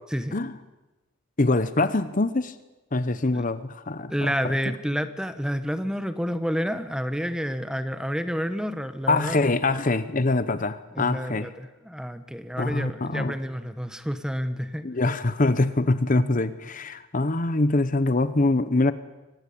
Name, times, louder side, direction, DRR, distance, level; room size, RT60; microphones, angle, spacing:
voice 1, 1.4-2.5 2.9-4.5 9.1-11.5 12.6-13.4 14.8-18.9, left 2 dB, 40° left, 13 dB, 0.8 m, -24 dB
voice 2, 4.1-9.4 10.9-14.9, equal, 5° right, 10 dB, 1.2 m, -29 dB
23.5 x 19.5 x 8.7 m, 1.1 s
head